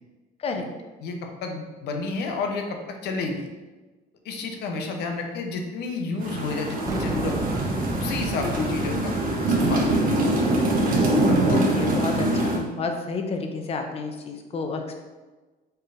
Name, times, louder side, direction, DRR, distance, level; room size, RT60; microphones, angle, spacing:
voice 1, 1.4-3.5 4.2-7.5 8.0-9.1 9.6-9.9 10.4-10.5, left 3 dB, 80° left, 4 dB, 0.6 m, -30 dB
sound 1, 6.2-12.6, right 1 dB, 55° right, 0.8 m, -23 dB
sound 2, 6.8-11.5, right 2 dB, 20° right, 0.5 m, -32 dB
voice 2, 8.4-8.7 11.5-15.0, left 4 dB, 35° left, 4 dB, 0.5 m, -30 dB
4.4 x 3.3 x 2.5 m, 1.2 s
cardioid pair, 110°, 17 cm